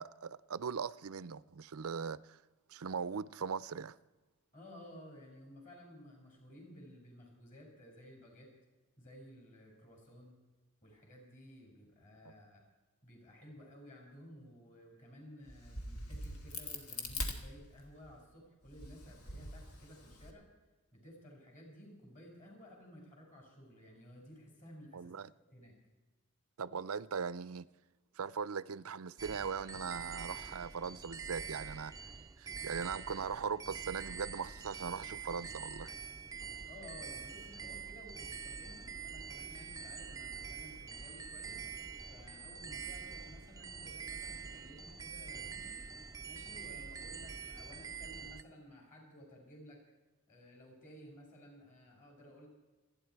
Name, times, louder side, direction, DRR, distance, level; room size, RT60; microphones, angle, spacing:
voice 1, 0.0-2.4 2.7-4.0 24.9-25.3 26.6-27.7 28.2-31.9 32.4-35.9, right 6 dB, 70° right, 0.5 m, -40 dB
voice 2, 4.5-8.5 9.0-10.3 10.8-12.6 13.0-20.5 20.9-25.1 25.5-25.8 36.7-41.6 42.1-45.8 46.2-49.8 50.3-52.5, equal, 35° left, 5.8 m, -55 dB
Crack, 15.5-18.1 18.6-20.3, left 2 dB, 80° left, 2.3 m, -43 dB
sound 1, 29.2-48.4, right 5 dB, 15° right, 0.5 m, -45 dB
28.5 x 10.5 x 4.6 m
head